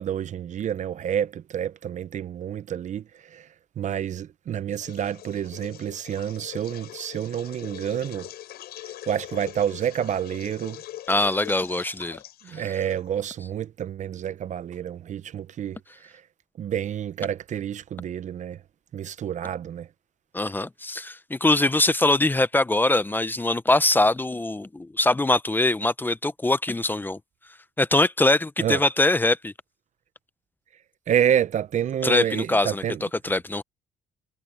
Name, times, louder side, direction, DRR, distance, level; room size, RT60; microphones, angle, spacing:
voice 1, 0.0-3.0 3.3-3.4 3.8-8.3 9.1-10.8 12.4-15.8 16.6-18.6 18.9-19.9 28.6-28.8 31.1-33.0, right 9 dB, 45° right, 0.6 m, -28 dB
sound 1, 4.7-13.3, left 13 dB, 70° left, 6.3 m, -43 dB
voice 2, 11.1-12.2 12.5-12.8 20.3-27.2 27.8-29.5 32.0-33.6, left 2 dB, 10° left, 0.7 m, -23 dB
cardioid pair, 110°, 17 cm